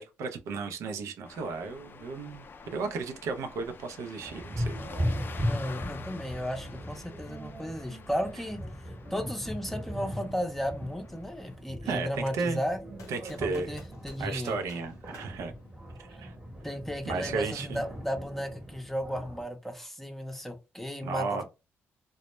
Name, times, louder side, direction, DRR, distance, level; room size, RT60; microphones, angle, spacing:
voice 1, 0.0-2.5 2.7-4.7 11.8-12.6 13.1-13.8 14.2-15.5 16.1-16.3 17.1-17.8 21.0-21.4, right 4 dB, 75° right, 0.4 m, -34 dB
sound 1, 1.2-11.6, left 5 dB, 45° left, 0.3 m, -48 dB
sound 2, 4.2-19.4, equal, 20° right, 0.9 m, -38 dB
voice 2, 5.4-8.6 9.1-12.8 13.3-14.6 16.6-21.4, equal, 5° left, 0.6 m, -34 dB
sound 3, 13.0-16.2, left 4 dB, 80° left, 0.6 m, -54 dB
2.1 x 2.1 x 2.9 m
cardioid pair, 70°, 5 cm